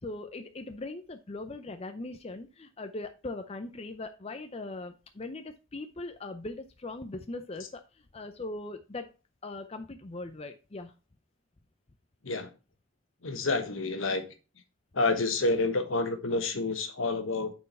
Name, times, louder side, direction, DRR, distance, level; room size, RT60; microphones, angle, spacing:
voice 1, 0.0-9.1 9.4-10.9, left 2 dB, 30° left, 0.5 m, -40 dB
voice 2, 13.2-14.2 14.9-17.5, left 3 dB, 75° left, 1.3 m, -28 dB
8.6 x 4.6 x 4.1 m
head